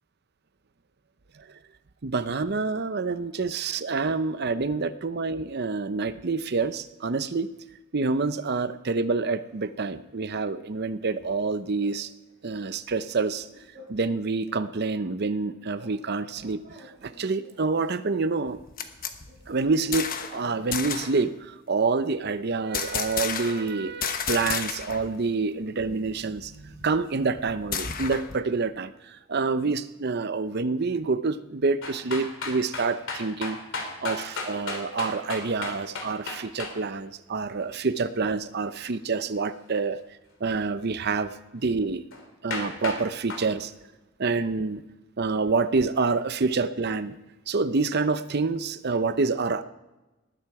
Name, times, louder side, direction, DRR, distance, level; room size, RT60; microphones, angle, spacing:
voice 1, 2.0-7.5 7.9-12.1 12.4-13.5 13.9-18.6 19.5-33.6 34.0-40.0 40.4-42.0 42.4-43.7 44.2-44.8 45.2-47.2 47.5-49.6, right 4 dB, 50° right, 12 dB, 0.7 m, -27 dB
sound 1, 10.1-11.4 11.8-12.0 12.3-14.2 14.5-16.0 16.3-18.4 19.3-21.3, equal, 35° right, 5.1 m, -54 dB
sound 2, 18.5-20.4 20.7-21.2 22.7-23.7 24.0-25.1 25.4-25.5 25.8-28.4, left 7 dB, 45° left, 1.1 m, -32 dB
sound 3, 31.8-36.7 42.1-42.2 42.5-43.0 43.3-43.5, left 3 dB, 65° left, 2.8 m, -33 dB
19.5 x 10.5 x 4.8 m, 1.1 s
head